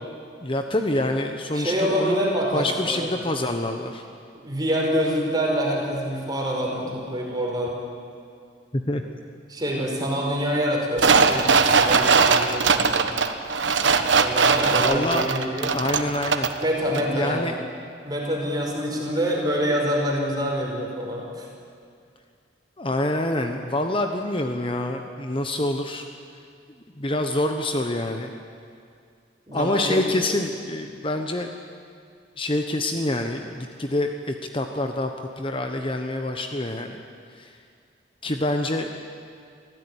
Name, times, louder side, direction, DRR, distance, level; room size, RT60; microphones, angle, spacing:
voice 1, 0.4-2.2 2.5-4.0 8.7-9.0 14.7-15.3 15.7-16.5 17.1-17.5 22.8-26.0 27.0-28.3 29.5-31.5 32.4-35.1 35.4-37.0 37.4-37.5 38.2-38.9, left 1 dB, 30° left, 5 dB, 1.1 m, -26 dB
voice 2, 1.5-3.1 4.3-7.8 9.5-13.1 13.8-15.7 16.6-17.4 18.0-21.5 29.5-30.0, equal, 20° right, -1 dB, 5.1 m, -26 dB
sound 1, 11.0-16.6 16.9-17.0, right 5 dB, 90° right, 1.3 m, -20 dB
25.5 x 15.5 x 9.9 m, 2.3 s
head